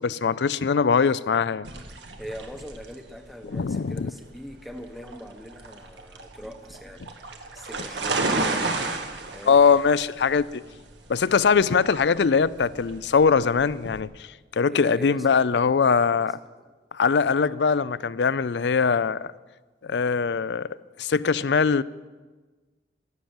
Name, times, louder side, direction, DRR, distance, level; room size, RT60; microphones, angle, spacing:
voice 1, 0.0-1.7 3.5-4.1 9.5-10.6 11.1-14.3 14.5-16.4 16.9-19.3 19.8-20.7 21.0-21.8, left 5 dB, 70° left, 0.5 m, -21 dB
sound 1, 1.6-14.0, right 3 dB, 85° right, 1.7 m, -33 dB
voice 2, 2.2-7.0 7.5-9.0 9.3-9.6 14.7-15.7 16.1-16.7, equal, ahead, 0.9 m, -42 dB
15.5 x 11.5 x 7.1 m
head